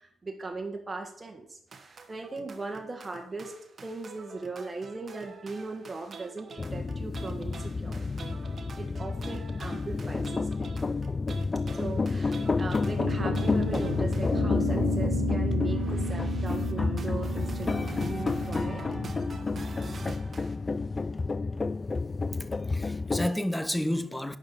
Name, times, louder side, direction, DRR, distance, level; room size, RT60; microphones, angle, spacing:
voice 1, 0.0-3.6 3.8-8.1 8.8-10.7 11.7-18.9, right 3 dB, 25° right, 1.8 m, -39 dB
sound 1, 1.7-14.4 15.4-20.6, right 4 dB, 40° right, 1.3 m, -46 dB
sound 2, 6.6-23.3, left 3 dB, 30° left, 0.4 m, -29 dB
Guitar, 13.0-19.5, right 11 dB, 85° right, 0.4 m, -38 dB
voice 2, 22.4-24.4, left 1 dB, 5° left, 0.8 m, -31 dB
11.5 x 8.3 x 4.1 m
figure-of-eight pair, 40°, 0 cm